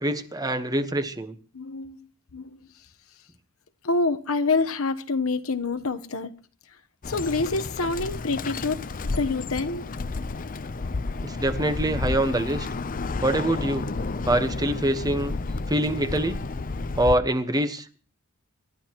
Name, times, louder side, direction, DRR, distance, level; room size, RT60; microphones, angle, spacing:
voice 1, 0.0-1.4 11.2-12.7 13.2-13.9 14.2-15.4 15.7-16.4 17.0-18.0, right 1 dB, 20° right, 1.2 m, -25 dB
voice 2, 1.5-2.1 2.3-2.6 3.8-6.3 7.1-8.9 9.2-9.8, left 3 dB, 85° left, 1.1 m, -26 dB
Bird, 7.0-17.2, left 3 dB, 40° left, 0.6 m, -31 dB
27.0 x 13.0 x 3.0 m
head